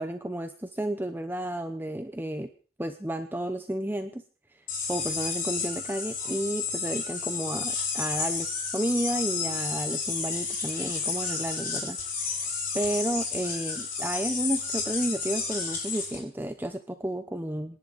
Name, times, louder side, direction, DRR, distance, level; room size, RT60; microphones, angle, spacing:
voice 1, 0.0-2.5 2.8-4.2 4.9-12.0 12.3-17.8, right 1 dB, 10° right, 8 dB, 0.7 m, -32 dB
sound 1, 4.7-16.2, left 5 dB, 45° left, 7.1 m, -31 dB
27.0 x 10.5 x 4.1 m, 0.40 s
head